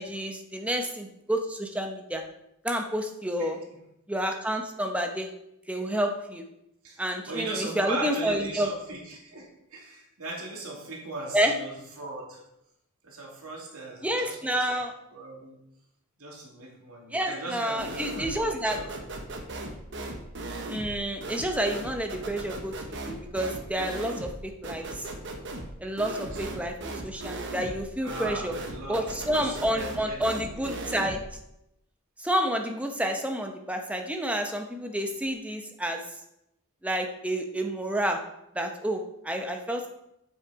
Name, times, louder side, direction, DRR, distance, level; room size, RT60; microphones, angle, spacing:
voice 1, 0.0-2.2 2.6-3.6 4.1-5.3 5.7-6.4 7.0-8.7 11.3-11.6 14.0-14.9 17.1-18.8 20.7-25.1 25.8-28.5 28.9-31.2 32.2-36.0 36.8-38.2 38.5-39.9, right 1 dB, 5° right, 4 dB, 0.8 m, -29 dB
voice 2, 6.8-12.4 13.0-14.7 15.1-15.6 16.2-18.9 26.2-26.5 27.2-27.3 28.0-30.6, right 2 dB, 75° right, -2 dB, 2.3 m, -39 dB
sound 1, 17.8-18.4 18.7-31.3, right 2 dB, 55° right, 1.1 m, -38 dB
8.0 x 6.4 x 4.7 m, 0.83 s
head